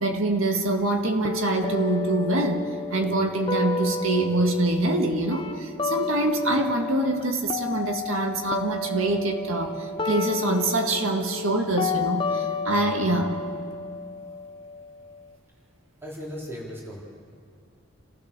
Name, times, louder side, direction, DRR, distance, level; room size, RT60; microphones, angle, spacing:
voice 1, 0.0-13.4, right 2 dB, 90° right, 3 dB, 1.9 m, -25 dB
sound 1, 1.2-7.2 7.5-15.3, left 4 dB, 25° left, 0.7 m, -31 dB
voice 2, 16.0-17.0, equal, 10° right, -4 dB, 3.3 m, -37 dB
28.5 x 15.0 x 6.7 m, 2.2 s
head